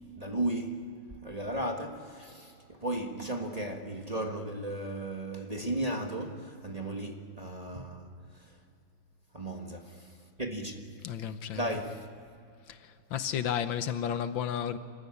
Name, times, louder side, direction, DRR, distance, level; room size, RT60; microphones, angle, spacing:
voice 1, 0.2-0.9 1.2-8.1 9.3-10.1 10.4-10.8 11.5-12.1, right 1 dB, 20° right, 1.4 m, -35 dB
voice 2, 11.0-11.6 12.7-12.8 13.1-14.8, left 9 dB, 75° left, 1.6 m, -32 dB
26.5 x 14.5 x 9.9 m
omnidirectional pair, 2.2 m